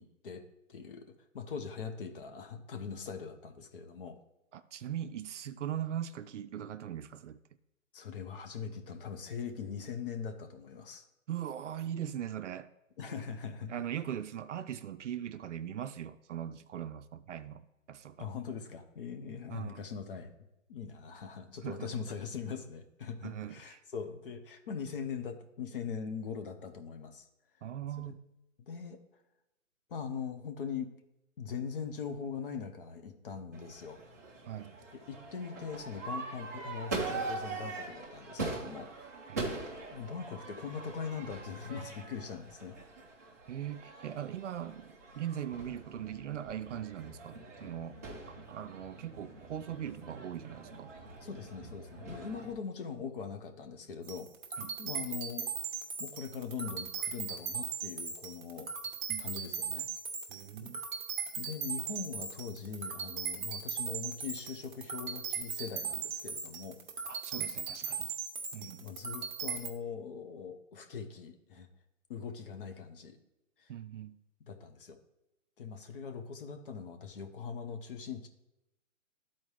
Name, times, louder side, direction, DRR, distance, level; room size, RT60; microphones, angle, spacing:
voice 1, 0.0-4.2 7.9-11.0 13.0-13.7 18.2-20.3 20.7-27.3 28.0-28.1 28.6-29.0 29.9-30.9 31.4-34.0 35.1-38.9 39.9-42.8 51.2-54.3 54.8-55.5 56.0-58.7 59.2-59.9 60.6-60.7 61.4-66.8 68.6-71.7 72.1-73.2 73.6-73.7 74.5-75.0 75.6-78.3, left 6 dB, 40° left, 7 dB, 0.8 m, -41 dB
voice 2, 4.5-7.4 11.3-12.7 13.7-18.3 19.5-19.8 21.6-21.9 23.2-23.8 27.6-28.2 34.5-34.7 39.3-39.4 43.5-50.9 54.6-54.8 59.1-59.3 60.3-60.8 67.1-68.1 68.5-68.9 73.7-74.2, right 10 dB, 65° right, 12 dB, 0.5 m, -40 dB
Crowd / Fireworks, 33.5-52.5, right 3 dB, 15° right, 0.4 m, -43 dB
sound 1, 54.0-69.7, right 6 dB, 35° right, 1.0 m, -38 dB
12.0 x 4.3 x 3.2 m, 0.91 s
hypercardioid pair, 155°, 40 cm